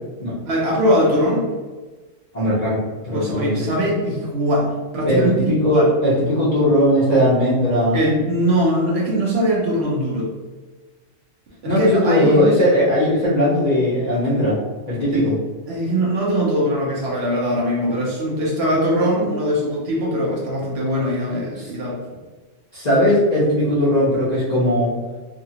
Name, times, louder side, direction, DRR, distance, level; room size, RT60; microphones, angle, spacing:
voice 1, 0.5-1.5 3.1-5.9 7.9-10.3 11.6-12.5 15.1-15.2 15.7-22.0, equal, 60° right, -4 dB, 0.8 m, -21 dB
voice 2, 2.3-3.7 5.1-8.0 11.7-14.6 14.9-15.3 21.5-21.7 22.7-24.9, equal, 40° left, -10 dB, 0.7 m, -18 dB
2.7 x 2.4 x 2.7 m, 1.3 s
omnidirectional pair, 1.3 m